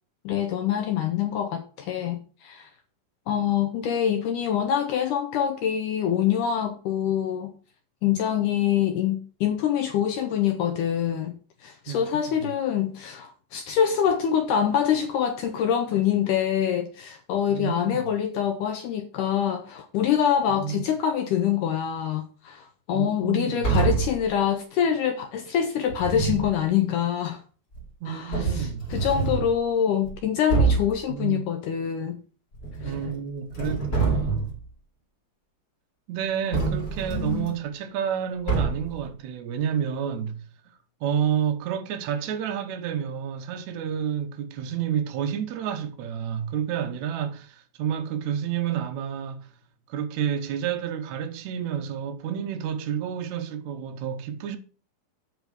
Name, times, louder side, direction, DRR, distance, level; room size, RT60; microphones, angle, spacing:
voice 1, 0.3-2.7 3.3-7.5 8.0-27.4 28.1-32.2 32.8-32.9 37.1-37.5, left 9 dB, 75° left, 2.0 m, -25 dB
voice 2, 17.5-18.0 20.5-20.8 22.9-23.7 28.0-28.8 31.1-31.4 32.8-34.5 36.1-40.4 41.0-49.5 49.9-54.6, right 8 dB, 75° right, 1.7 m, -30 dB
sound 1, 23.6-24.2 25.9-26.5 27.7-27.8 28.3-29.5 30.0-30.1 30.5-31.0 32.5-33.2 33.5-34.6 36.5-37.5 38.5-39.0, right 4 dB, 30° left, 2.3 m, -26 dB
8.3 x 4.6 x 6.5 m
omnidirectional pair, 4.4 m